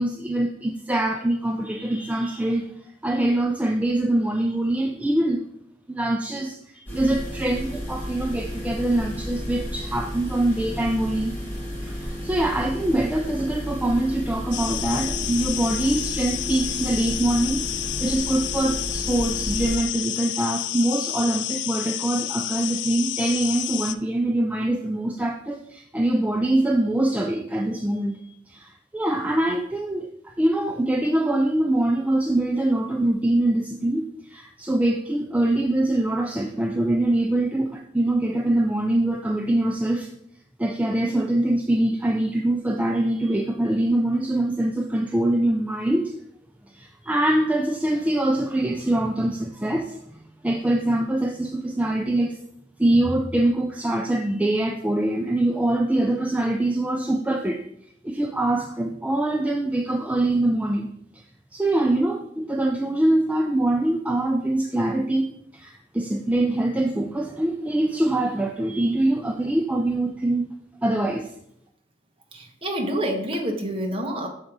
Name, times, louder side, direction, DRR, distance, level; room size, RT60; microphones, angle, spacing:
voice 1, 0.0-2.7 3.0-5.4 5.9-11.4 11.8-17.7 18.0-40.1 40.6-46.1 46.7-50.2 50.4-52.4 52.8-57.6 58.0-60.9 61.1-61.2 61.5-70.5 70.8-71.3, right 1 dB, 10° right, 3 dB, 0.3 m, -24 dB
sound 1, 6.9-19.7, equal, 10° left, 2.1 m, -32 dB
sound 2, 14.5-23.9, left 13 dB, 80° left, 0.3 m, -30 dB
voice 2, 72.3-74.3, equal, 30° right, 2 dB, 1.0 m, -27 dB
6.5 x 3.8 x 4.6 m, 0.74 s
head